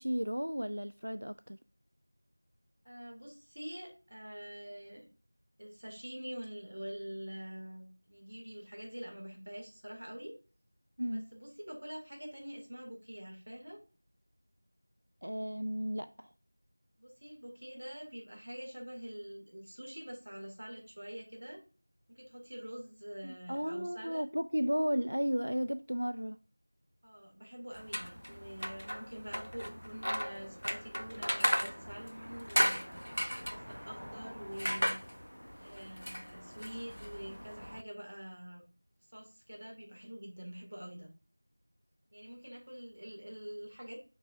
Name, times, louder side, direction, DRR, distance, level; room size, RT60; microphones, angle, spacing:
voice 1, 0.0-1.6 11.0-11.3 15.2-16.3 23.2-26.4, equal, 70° right, 0.3 m, -34 dB
voice 2, 2.8-5.1 5.6-10.4 11.1-13.8 17.0-21.6 22.1-24.2 27.0-33.0 33.5-35.0 35.6-38.6 39.1-41.1 42.1-44.0, equal, 40° right, 2.2 m, -46 dB
sound 1, 27.7-37.8, equal, 90° left, 0.4 m, -36 dB
7.5 x 5.3 x 2.5 m
figure-of-eight pair, 175°, 0 cm